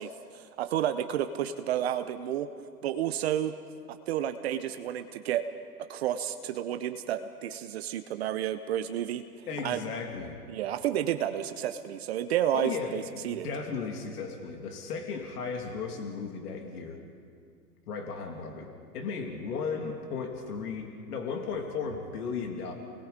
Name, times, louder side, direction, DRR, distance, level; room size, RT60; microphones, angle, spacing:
voice 1, 0.0-2.5 2.8-3.5 3.9-5.4 5.9-9.2 9.6-9.8 10.5-13.5, right 11 dB, 40° right, 9 dB, 0.7 m, -31 dB
voice 2, 9.5-10.4 12.5-17.0 17.9-22.7, left 5 dB, 65° left, 3 dB, 2.8 m, -35 dB
30.0 x 20.5 x 5.2 m, 2.2 s
hypercardioid pair, 140°, 50 cm